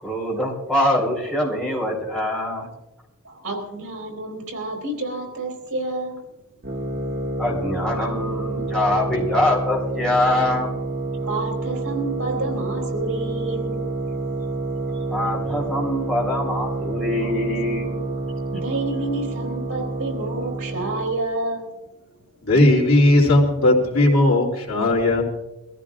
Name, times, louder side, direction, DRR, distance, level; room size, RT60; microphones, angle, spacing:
voice 1, 0.0-2.7 7.4-10.7 15.1-18.1, left 1 dB, 5° left, -3 dB, 4.1 m, -24 dB
voice 2, 3.2-6.2 10.3-10.4 11.2-13.8 17.2-17.3 18.5-21.7, right 2 dB, 80° right, 1 dB, 3.9 m, -29 dB
sound 1, 6.6-21.2, right 2 dB, 45° right, 1.6 m, -28 dB
voice 3, 22.4-25.2, left 1 dB, 70° left, -2 dB, 3.1 m, -17 dB
24.0 x 14.5 x 2.5 m, 1.0 s
head